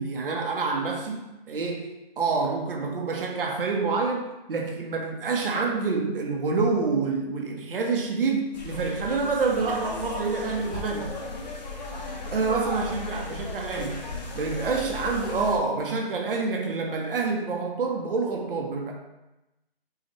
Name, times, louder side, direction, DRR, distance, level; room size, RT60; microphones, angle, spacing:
voice 1, 0.0-1.9 2.2-11.1 12.2-14.0 14.3-18.9, right 4 dB, 65° right, 1 dB, 0.8 m, -27 dB
sound 1, 8.5-15.6, left 3 dB, 45° left, 0.7 m, -36 dB
5.6 x 2.4 x 3.0 m, 0.99 s
hypercardioid pair, 165°, 30 cm